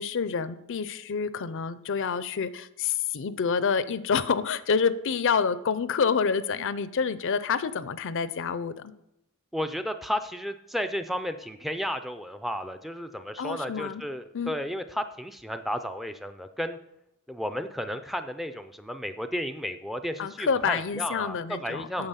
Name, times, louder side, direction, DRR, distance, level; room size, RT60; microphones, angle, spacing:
voice 1, 0.0-8.9 13.4-14.0 14.3-14.5 20.2-22.1, left 6 dB, 60° left, 15 dB, 0.5 m, -28 dB
voice 2, 9.5-16.8 17.3-22.1, equal, ahead, 9 dB, 0.4 m, -33 dB
8.8 x 6.8 x 5.7 m, 0.82 s
head